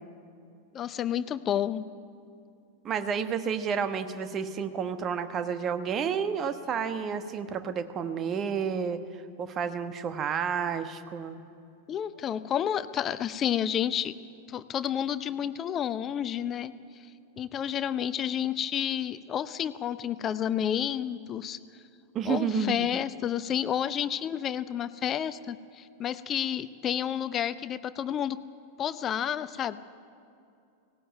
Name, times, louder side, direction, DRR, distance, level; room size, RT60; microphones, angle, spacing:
voice 1, 0.7-1.8 11.9-14.1 14.5-16.7 17.4-21.6 22.2-28.4 28.8-29.8, left 9 dB, 30° left, 14 dB, 0.8 m, -30 dB
voice 2, 2.8-9.0 9.4-11.4 22.1-22.9, right 6 dB, 30° right, 10 dB, 1.2 m, -30 dB
18.0 x 17.5 x 9.5 m, 2.6 s
figure-of-eight pair, 90°, 0 cm